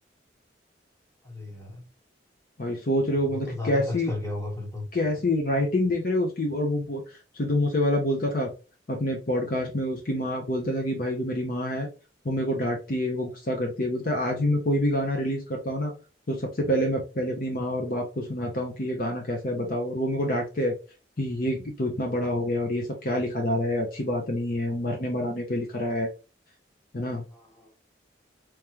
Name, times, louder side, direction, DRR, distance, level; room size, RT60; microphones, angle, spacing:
voice 1, 1.2-1.9 3.2-4.9 27.3-27.7, left 2 dB, 15° left, 0 dB, 1.3 m, -35 dB
voice 2, 2.6-4.1 4.9-8.5 8.9-11.9 12.2-15.9 16.3-20.7 21.2-26.1 26.9-27.2, left 1 dB, 50° left, 1 dB, 0.8 m, -27 dB
3.5 x 3.1 x 3.0 m, 0.32 s
head